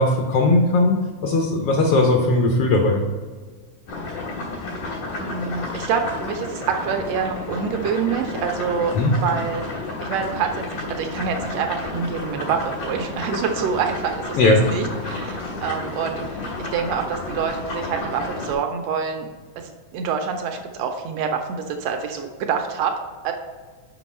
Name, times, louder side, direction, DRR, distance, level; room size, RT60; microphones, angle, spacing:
voice 1, 0.0-3.0 9.0-9.1 14.3-14.6, left 2 dB, 70° left, 2 dB, 1.4 m, -18 dB
sound 1, 3.9-18.6, left 2 dB, 90° left, 3.3 m, -31 dB
voice 2, 5.2-8.9 9.2-14.4 14.7-19.3 19.6-23.0 23.2-23.3, right 6 dB, 80° right, 4 dB, 1.5 m, -26 dB
6.1 x 5.3 x 4.2 m, 1.5 s
omnidirectional pair, 3.4 m